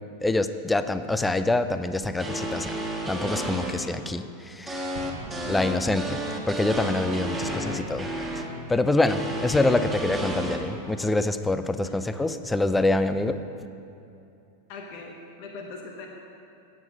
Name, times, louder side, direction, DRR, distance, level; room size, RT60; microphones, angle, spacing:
voice 1, 0.2-2.8 3.1-4.9 5.5-6.2 6.5-8.1 8.4-13.4, left 2 dB, 10° left, 11 dB, 0.4 m, -25 dB
sound 1, 2.2-3.7 4.7-8.4 9.1-10.6, right 1 dB, 10° right, 1.6 m, -31 dB
Explosion, 4.9-6.5, right 3 dB, 45° right, 1.2 m, -42 dB
voice 2, 7.3-7.7 11.8-11.9 14.7-16.1, left 3 dB, 45° left, 0 dB, 1.0 m, -41 dB
8.9 x 7.8 x 5.9 m, 2.7 s
figure-of-eight pair, 90°, 0 cm